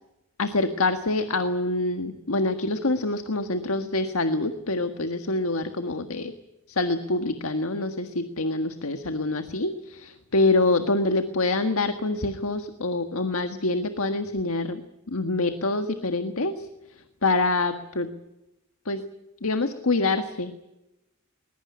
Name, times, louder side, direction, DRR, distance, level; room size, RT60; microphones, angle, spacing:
voice 1, 0.4-6.3 6.7-14.8 15.1-18.1 18.8-19.0 19.4-20.7, left 2 dB, 85° left, 7 dB, 1.6 m, -26 dB
21.0 x 20.5 x 9.8 m, 0.95 s
head